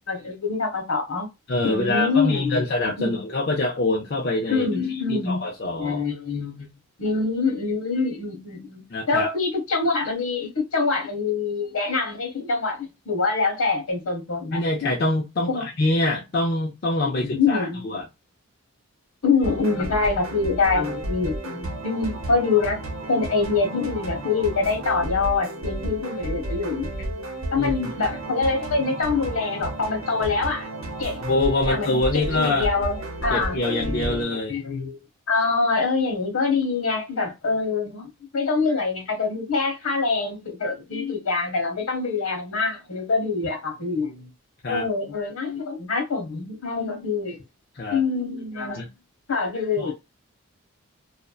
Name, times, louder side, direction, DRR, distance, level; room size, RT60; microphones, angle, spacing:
voice 1, 0.1-1.3 1.6-2.7 3.0-3.2 4.5-5.4 5.8-6.7 7.0-14.6 15.5-15.6 17.2-17.8 19.2-22.8 23.1-26.9 27.5-30.7 31.0-31.2 31.6-35.0 35.3-44.3 44.7-47.4 47.9-48.9 49.3-49.9, left 4 dB, 75° left, 1.0 m, -25 dB
voice 2, 1.5-4.7 5.1-6.0 8.9-9.3 14.5-18.0 27.6-27.7 31.2-32.7 33.3-34.6 44.6-44.9 47.8-48.0 48.8-48.9 49.8-49.9, left 2 dB, 45° left, 0.5 m, -25 dB
sound 1, 19.4-34.2, right 1 dB, 70° right, 0.7 m, -32 dB
2.6 x 2.1 x 2.2 m
head